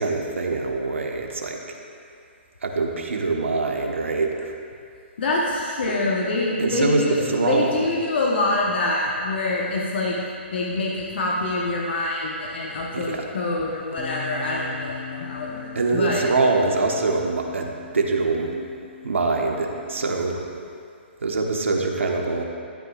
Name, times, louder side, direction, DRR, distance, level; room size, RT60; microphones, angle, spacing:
voice 1, 0.0-1.6 2.6-4.5 6.6-7.9 12.9-13.3 15.7-18.5 19.0-20.4 21.2-22.4, right 3 dB, 90° right, 1 dB, 1.2 m, -24 dB
voice 2, 5.2-10.1 10.5-16.2, left 2 dB, 60° left, -3 dB, 1.2 m, -25 dB
sound 1, 14.0-20.2, left 8 dB, 30° left, 1.0 m, -40 dB
12.5 x 9.1 x 2.5 m, 2.4 s
hypercardioid pair, 150°, 6 cm